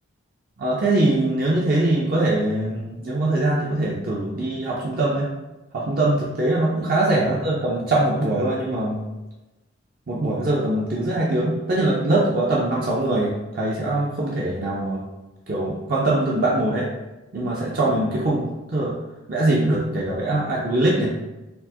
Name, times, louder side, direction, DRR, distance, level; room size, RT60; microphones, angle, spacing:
voice 1, 0.6-5.3 5.7-9.0 10.1-15.0 15.5-16.9 17.3-18.9 19.3-21.1, right 2 dB, 45° right, -5 dB, 0.4 m, -22 dB
4.4 x 2.0 x 2.7 m, 1.0 s
head